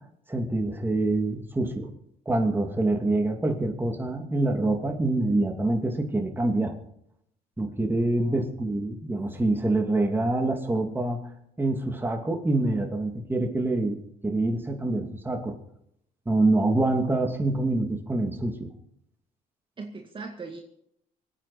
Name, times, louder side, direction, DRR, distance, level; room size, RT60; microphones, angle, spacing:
voice 1, 0.3-1.9 2.3-6.8 7.6-11.3 11.6-15.6 16.3-18.7, right 2 dB, 10° right, 3 dB, 2.6 m, -26 dB
voice 2, 19.8-20.6, right 4 dB, 30° right, 2 dB, 2.0 m, -40 dB
26.0 x 9.1 x 4.4 m, 0.73 s
cardioid pair, 110°, 17 cm